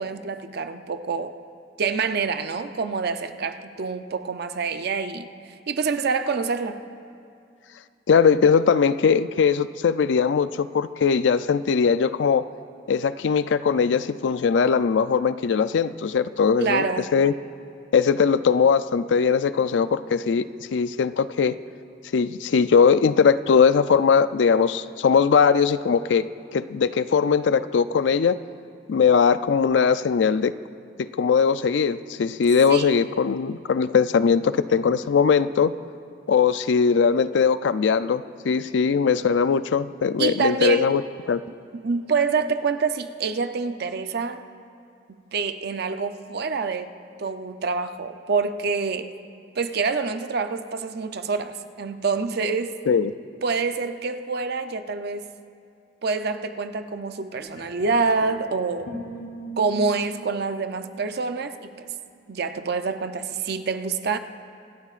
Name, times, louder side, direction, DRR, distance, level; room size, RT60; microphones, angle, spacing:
voice 1, 0.0-1.3 1.8-5.3 5.7-6.8 16.6-17.1 32.7-33.0 40.2-40.9 41.7-44.4 45.3-46.9 47.2-49.1 49.6-52.7 53.4-55.3 56.0-58.9 59.6-61.9 62.3-64.2, right 4 dB, 60° right, 9 dB, 0.6 m, -26 dB
voice 2, 8.1-12.4 12.9-16.9 17.1-17.3 17.9-20.4 20.7-21.6 22.1-28.4 28.9-30.5 31.0-35.7 36.3-41.0 41.3-41.4 52.9-53.1, left 6 dB, 75° left, 14 dB, 0.4 m, -20 dB
sound 1, 57.4-58.4 58.8-61.7, right 2 dB, 60° left, 3.9 m, -40 dB
25.5 x 12.0 x 2.5 m, 2.5 s
head